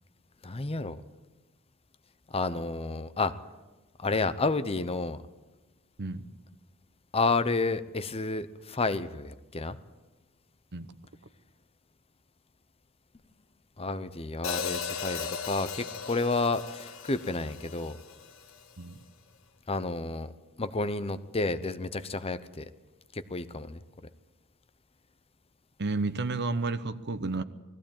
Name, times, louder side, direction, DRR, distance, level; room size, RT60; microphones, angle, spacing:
voice 1, 0.4-1.0 2.3-3.3 4.0-5.2 7.1-9.8 13.8-18.0 19.7-20.3 20.6-22.7 23.1-23.8, left 3 dB, 25° left, 12 dB, 0.8 m, -30 dB
Hi-hat, 14.4-18.6, left 6 dB, 70° left, 1.4 m, -37 dB
voice 2, 25.8-27.4, right 3 dB, 50° right, 12 dB, 0.9 m, -31 dB
20.0 x 15.0 x 8.8 m, 1.1 s
head